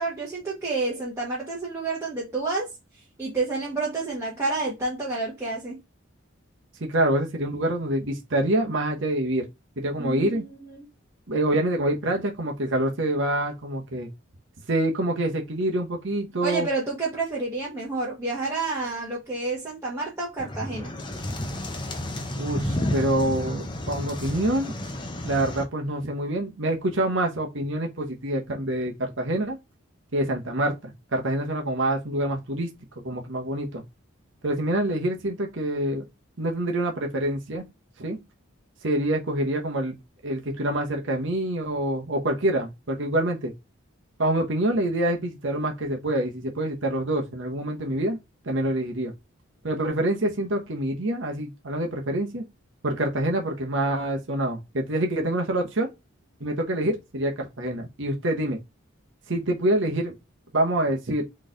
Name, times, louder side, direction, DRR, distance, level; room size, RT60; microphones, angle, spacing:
voice 1, 0.0-2.7 2.9-5.8 10.0-10.9 16.4-21.0, right 3 dB, 15° right, 1.3 m, -29 dB
voice 2, 6.8-9.5 9.8-10.4 11.3-14.1 14.7-16.7 22.4-24.7 25.2-29.6 30.1-32.7 33.0-33.8 34.4-36.0 36.4-37.6 38.0-38.2 38.8-40.0 40.2-43.5 44.2-48.2 48.4-49.1 49.6-52.4 52.8-55.9 56.4-58.6 59.3-60.1 60.5-61.2, right 1 dB, 60° right, 1.0 m, -26 dB
sound 1, 20.4-25.6, left 1 dB, 20° left, 0.7 m, -31 dB
4.1 x 3.2 x 3.8 m
head